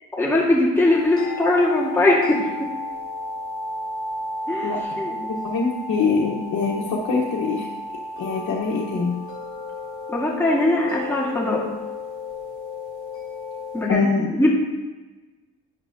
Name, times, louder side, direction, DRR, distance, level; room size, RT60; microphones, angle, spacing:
voice 1, 0.1-2.7 4.5-4.7 5.0-5.1 10.1-11.6 13.7-14.5, left 2 dB, 10° left, -5 dB, 1.9 m, -20 dB
sound 1, 0.7-13.9, left 2 dB, 45° left, 2.6 m, -33 dB
voice 2, 4.6-7.7 8.2-9.2 13.9-14.3, left 4 dB, 75° left, -2 dB, 1.3 m, -24 dB
10.5 x 9.8 x 2.8 m, 1.2 s
cardioid pair, 90°, 30 cm